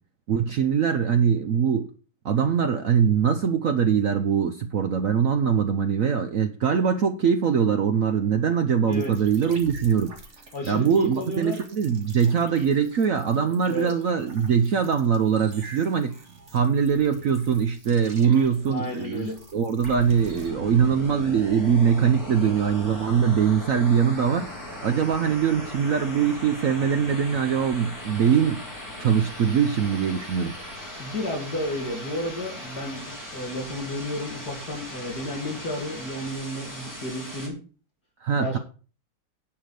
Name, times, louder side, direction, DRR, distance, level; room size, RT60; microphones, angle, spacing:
voice 1, 0.3-1.9 2.2-10.1 10.7-16.1 16.5-24.5 24.8-28.6 29.0-30.5 38.2-38.6, right 7 dB, 70° right, 8 dB, 0.8 m, -22 dB
sound 1, 8.9-20.5, right 2 dB, 35° right, 2.0 m, -47 dB
voice 2, 10.5-11.6 13.6-13.9 18.7-19.4 31.0-37.6 38.4-38.6, left 1 dB, 50° left, 0 dB, 2.8 m, -32 dB
sound 2, 19.8-37.5, left 1 dB, 10° left, 3.0 m, -38 dB
10.5 x 4.9 x 6.8 m, 0.38 s
omnidirectional pair, 2.3 m